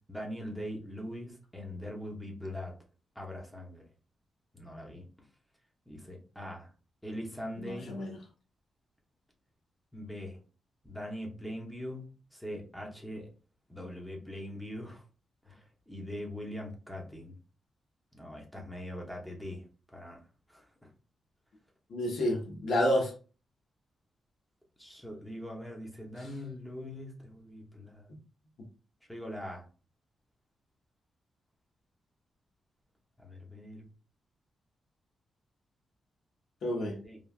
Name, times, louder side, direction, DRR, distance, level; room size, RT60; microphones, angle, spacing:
voice 1, 0.1-2.7 3.2-3.8 4.5-5.0 5.9-6.7 7.0-8.0 9.9-10.4 10.8-13.3 13.7-15.0 15.4-17.3 18.1-19.6 19.9-20.2 20.5-20.9 24.8-28.1 29.1-29.7 33.2-33.9 37.0-37.2, left 1 dB, 5° left, -1 dB, 0.6 m, -42 dB
voice 2, 7.6-8.2 21.9-23.1 36.6-37.0, left 1 dB, 70° left, 0 dB, 0.8 m, -29 dB
3.2 x 2.2 x 2.3 m, 0.36 s
wide cardioid pair, 175°, 0 cm